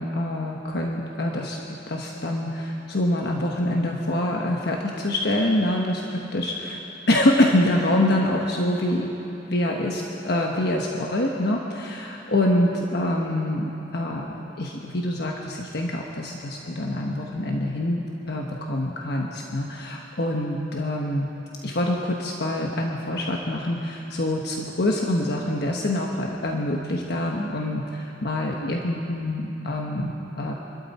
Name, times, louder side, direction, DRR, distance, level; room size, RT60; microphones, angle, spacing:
voice 1, 0.0-1.6 1.9-6.8 7.1-9.1 9.5-18.0 18.2-21.3 21.6-30.5, left 1 dB, 60° left, -1 dB, 1.2 m, -25 dB
26.5 x 12.5 x 4.3 m, 3.0 s
head